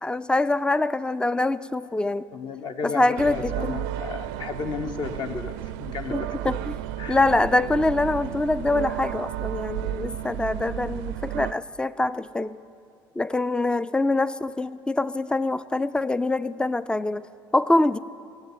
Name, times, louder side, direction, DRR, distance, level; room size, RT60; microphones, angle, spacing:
voice 1, 0.0-2.3 2.8-3.8 6.1-6.7 7.1-12.6 13.2-17.3 17.5-18.0, left 2 dB, 10° left, 17 dB, 0.4 m, -24 dB
voice 2, 2.3-6.5 7.0-7.2, left 5 dB, 45° left, 7 dB, 1.2 m, -34 dB
sound 1, 3.2-11.5, right 13 dB, 65° right, 0.5 m, -33 dB
17.5 x 7.4 x 9.5 m, 2.6 s
hypercardioid pair, 65°, 11 cm